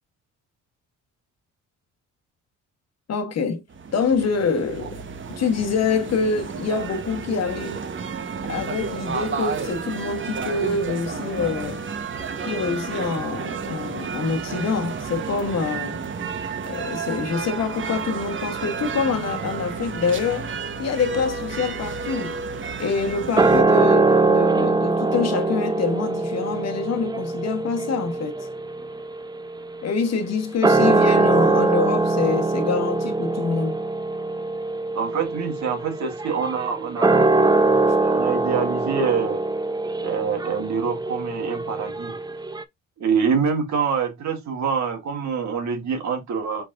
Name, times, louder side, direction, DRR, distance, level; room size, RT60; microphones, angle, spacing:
voice 1, 3.1-3.6 3.9-5.0 5.4-7.9 8.5-11.8 12.5-16.0 16.6-20.5 20.8-22.3 22.8-28.4 29.8-33.8, left 5 dB, 55° left, 1.1 m, -26 dB
sound 1, 3.7-23.6, right 5 dB, 40° right, 1.0 m, -31 dB
sound 2, 23.4-30.0 30.5-42.6, right 3 dB, 15° right, 0.5 m, -22 dB
voice 2, 34.9-37.3 38.0-39.4 40.0-42.1 43.0-46.6, right 6 dB, 65° right, 1.7 m, -25 dB
5.0 x 4.2 x 2.5 m
cardioid pair, 90°, 30 cm